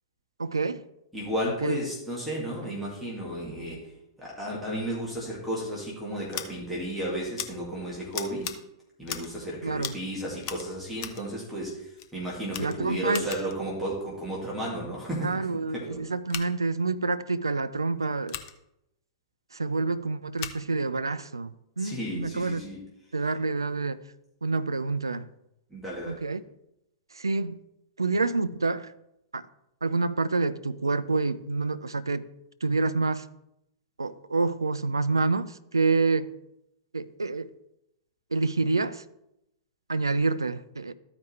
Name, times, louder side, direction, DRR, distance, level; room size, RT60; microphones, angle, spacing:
voice 1, 0.4-0.8 1.6-1.8 9.6-9.9 12.6-13.2 15.2-18.4 19.5-22.6 23.1-24.0 24.4-25.3 26.1-26.4 27.2-27.6 28.0-28.9 29.3-29.4 29.8-32.3 32.6-33.3 34.0-36.3 36.9-37.5 38.3-39.0 39.9-40.9, right 3 dB, 80° right, 0.4 m, -27 dB
voice 2, 1.1-3.8 4.2-8.5 9.0-15.3 15.7-16.1 21.8-22.8 25.7-26.2, right 1 dB, ahead, 2.2 m, -33 dB
Scissors, 6.3-6.5 7.4-7.5 8.1-8.6 9.0-9.4 9.8-10.0 10.4-11.2 12.0-12.1 12.5-13.6 16.2-16.5 18.3-18.5 20.4-20.6, left 10 dB, 45° left, 0.7 m, -37 dB
13.5 x 4.9 x 3.3 m
figure-of-eight pair, 100°, 2 cm